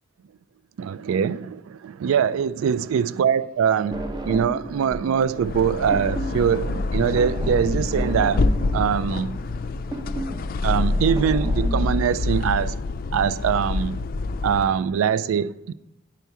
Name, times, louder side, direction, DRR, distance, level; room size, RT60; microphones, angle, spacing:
voice 1, 0.8-8.5 8.7-9.4 10.6-12.8 13.1-14.0 14.4-15.7, right 7 dB, 80° right, 0.3 m, -23 dB
sound 1, 3.9-5.2 5.4-11.9, right 1 dB, 20° right, 0.6 m, -32 dB
sound 2, 5.3-14.8, left 3 dB, 45° left, 0.4 m, -26 dB
9.2 x 5.6 x 4.7 m
head